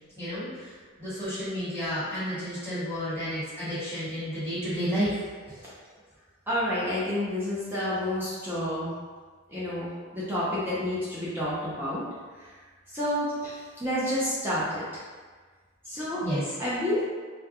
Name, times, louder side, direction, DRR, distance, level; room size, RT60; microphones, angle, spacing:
voice 1, 0.2-0.7 1.0-5.6 16.2-16.5, equal, 10° left, -15 dB, 1.4 m, -31 dB
voice 2, 6.5-8.9 9.5-12.0 12.9-15.0 15.8-16.2 16.6-17.1, left 1 dB, 10° right, -10 dB, 0.4 m, -29 dB
2.3 x 2.1 x 2.8 m, 1.5 s
head